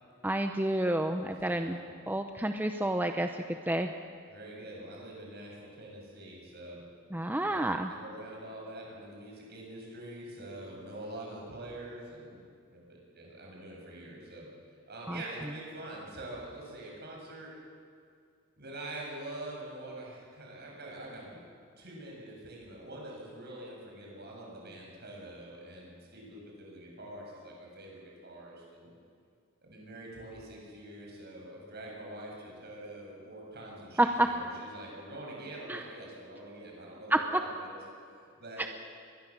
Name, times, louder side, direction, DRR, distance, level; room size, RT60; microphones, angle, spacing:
voice 1, 0.2-1.8 2.1-3.9 7.1-7.9 15.1-15.2 34.0-34.3 35.7-35.8 37.1-37.2, right 1 dB, 10° right, 6 dB, 0.7 m, -29 dB
voice 2, 1.5-1.9 4.3-6.8 7.5-12.4 12.7-14.5 14.9-17.5 18.6-21.4 21.8-28.9 29.6-37.8 38.4-38.7, right 1 dB, 50° right, -2 dB, 7.6 m, -45 dB
23.0 x 21.0 x 7.5 m, 2.3 s
head